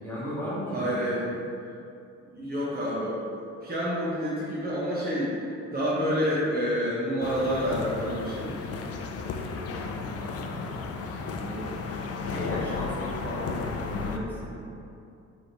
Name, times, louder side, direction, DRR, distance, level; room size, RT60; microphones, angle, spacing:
voice 1, 0.0-1.0 1.3-1.4 9.6-10.7 11.4-12.0 12.3-14.7, equal, 5° left, -9 dB, 1.3 m, -36 dB
voice 2, 0.7-1.2 2.3-3.2 3.6-5.3 5.7-8.6, equal, 30° right, -8 dB, 0.9 m, -28 dB
sound 1, 7.2-14.2, left 4 dB, 55° left, 0.4 m, -34 dB
3.5 x 2.8 x 3.9 m, 2.6 s
cardioid pair, 90°, 30 cm